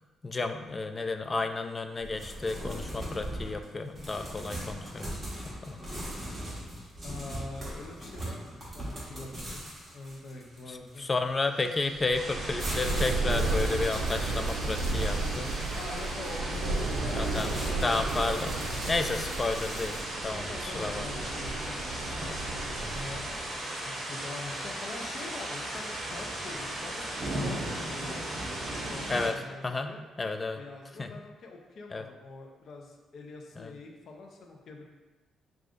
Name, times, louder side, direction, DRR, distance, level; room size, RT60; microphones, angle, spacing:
voice 1, 0.2-5.2 5.6-5.8 10.7-15.5 17.1-17.5 17.8-18.6 18.9-20.0 20.2-21.0 22.1-22.4 22.8-23.0 29.1-29.4 29.6-30.6 31.0-31.1 31.9-32.0 33.6-33.7, left 3 dB, 25° left, 7 dB, 0.3 m, -32 dB
sound 1, 2.0-11.4 12.1-20.1, right 1 dB, 25° right, 1.4 m, -41 dB
voice 2, 7.0-11.1 15.7-19.2 20.4-22.2 22.9-30.0 30.6-34.8, left 3 dB, 60° left, 2 dB, 0.6 m, -44 dB
sound 2, 11.7-23.5, right 2 dB, 80° right, 0.5 m, -33 dB
sound 3, 12.1-29.3, right 1 dB, 40° right, 1.3 m, -37 dB
6.2 x 2.4 x 2.5 m, 1.2 s
cardioid pair, 90°, 0 cm